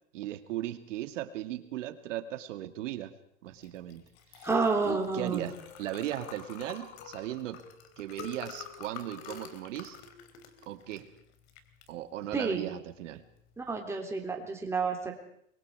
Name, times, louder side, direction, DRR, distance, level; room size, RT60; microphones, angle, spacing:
voice 1, 0.1-3.2 3.4-4.0 4.3-4.5 4.8-7.7 8.0-10.0 10.7-11.1 11.9-13.2, right 13 dB, 65° right, 9 dB, 2.3 m, -37 dB
Liquid, 3.6-13.7, left 8 dB, 50° left, 3.4 m, -48 dB
voice 2, 4.4-5.5 12.3-12.7 13.6-15.1, right 4 dB, 5° right, 1 dB, 3.3 m, -30 dB
29.0 x 23.0 x 4.8 m, 0.68 s
supercardioid pair, 150°, 40 cm